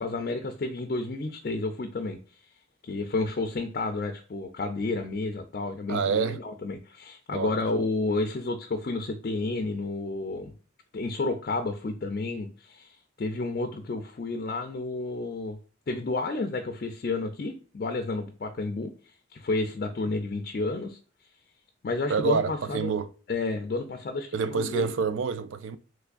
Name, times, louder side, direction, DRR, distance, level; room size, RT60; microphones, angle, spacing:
voice 1, 0.0-2.4 2.8-10.5 10.9-15.6 15.9-21.0 21.8-22.9 23.3-24.9, left 3 dB, 50° left, 0.4 m, -31 dB
voice 2, 5.9-6.4 7.3-7.5 22.1-23.1 24.3-25.8, right 5 dB, 80° right, 0.4 m, -27 dB
3.4 x 3.2 x 2.3 m
head